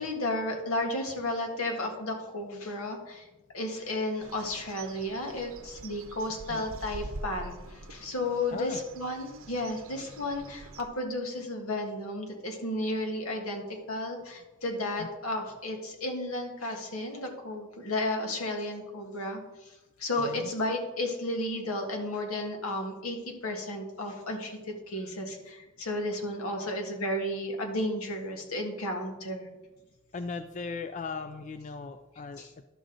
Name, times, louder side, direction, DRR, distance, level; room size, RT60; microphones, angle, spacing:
voice 1, 0.0-3.3 3.5-29.5 32.4-32.5, left 1 dB, 80° left, 2 dB, 1.6 m, -33 dB
Bird, 4.2-10.9, right 2 dB, 65° right, 0.7 m, -45 dB
voice 2, 6.3-6.7 8.5-8.8 15.0-15.1 20.2-20.5 26.4-26.7 30.1-32.5, left 4 dB, 35° left, 10 dB, 0.3 m, -38 dB
11.5 x 6.3 x 3.9 m, 1.1 s
head